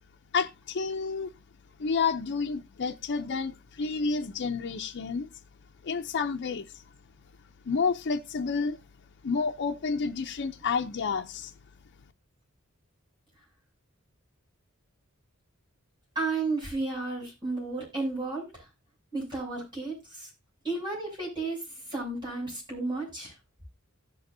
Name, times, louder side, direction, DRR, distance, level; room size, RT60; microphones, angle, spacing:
voice 1, 0.3-1.3 1.8-5.3 5.8-6.8 7.7-8.8 9.2-11.5, left 5 dB, 55° left, 0.5 m, -30 dB
voice 2, 16.2-18.7 19.1-20.3 20.6-21.6 21.9-23.3, right 3 dB, 20° right, 6.9 m, -33 dB
16.5 x 6.9 x 2.7 m
head